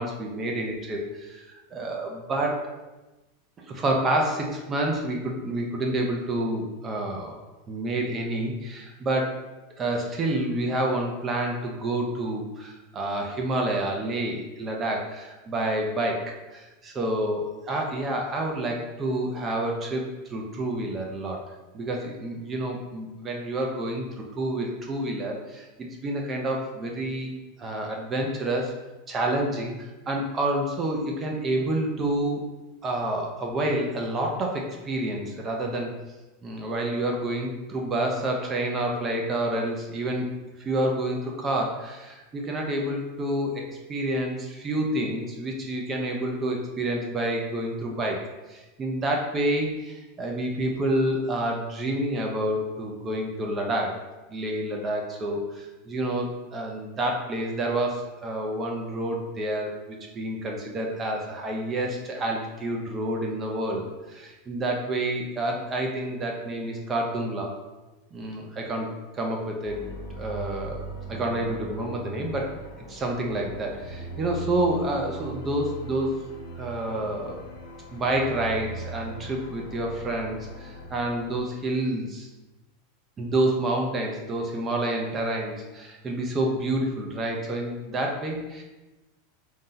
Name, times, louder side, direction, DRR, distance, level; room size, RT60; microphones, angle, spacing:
voice 1, 0.0-2.6 3.6-7.4 7.7-9.4 9.8-16.2 16.5-20.0 20.3-21.4 21.7-24.0 24.3-28.7 29.1-32.5 32.8-35.9 36.4-40.3 40.6-43.6 43.9-48.2 48.5-53.9 54.3-67.6 68.1-69.8 70.1-72.6 72.9-76.2 76.6-77.4 77.9-82.3 83.2-88.6, right 1 dB, 20° right, 1 dB, 0.5 m, -28 dB
sound 1, 69.6-81.4, right 2 dB, 85° left, 1.0 m, -40 dB
4.2 x 2.6 x 3.8 m, 1.1 s
supercardioid pair, 170°, 0 cm